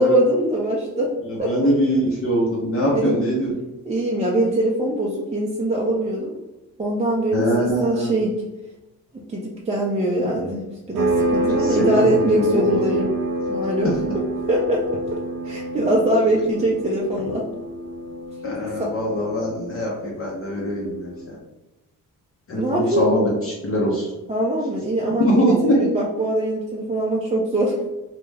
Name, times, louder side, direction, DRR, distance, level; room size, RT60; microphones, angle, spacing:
voice 1, 0.0-1.1 1.4-1.5 2.9-3.2 3.8-6.3 6.8-8.3 9.1-13.1 13.5-13.9 14.5-15.0 15.4-17.5 18.8-18.9 22.5-23.1 24.3-27.9, right 1 dB, 20° right, -3 dB, 0.4 m, -22 dB
voice 2, 1.3-3.5 7.3-8.1 11.5-12.8 18.4-21.4 22.5-24.1 25.2-25.7, equal, 40° left, -3 dB, 0.6 m, -22 dB
sound 1, 11.0-21.3, right 1 dB, 80° right, 0.5 m, -27 dB
2.3 x 2.1 x 3.3 m, 1.0 s
cardioid pair, 75°, 34 cm